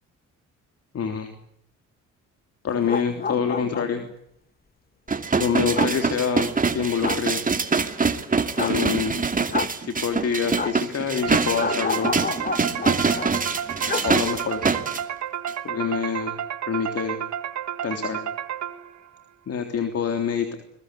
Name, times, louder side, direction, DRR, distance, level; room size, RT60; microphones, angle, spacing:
voice 1, 0.9-1.3 2.6-4.0 5.3-7.4 8.6-9.1 9.8-12.2 13.9-14.6 15.6-16.3 16.7-17.2 17.8-18.2 19.5-20.5, left 6 dB, 55° left, 6 dB, 3.4 m, -26 dB
sound 1, 2.7-4.1 5.7-5.9 7.0-7.2 8.6-8.8 9.5-9.7 10.5-10.7 11.6-13.3 13.8-14.1 14.3-14.4, left 5 dB, 30° left, 1.7 m, -29 dB
sound 2, 5.1-15.0 15.5-15.6, right 4 dB, 25° right, 2.4 m, -24 dB
sound 3, 11.2-19.1, right 9 dB, 65° right, 1.9 m, -31 dB
28.5 x 21.5 x 8.3 m, 0.75 s
cardioid pair, 90°, 30 cm